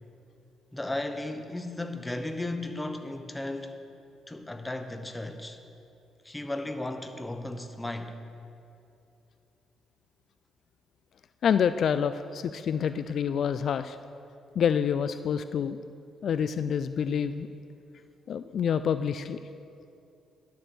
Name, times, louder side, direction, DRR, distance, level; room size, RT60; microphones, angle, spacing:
voice 1, 0.7-3.7 4.3-5.6 6.2-8.2, left 2 dB, 10° left, 7 dB, 0.9 m, -35 dB
voice 2, 11.4-14.0 14.6-15.8 16.2-17.5 18.3-19.4, left 7 dB, 60° left, 12 dB, 0.3 m, -27 dB
11.0 x 7.5 x 6.9 m, 2.7 s
cardioid pair, 90°, 0 cm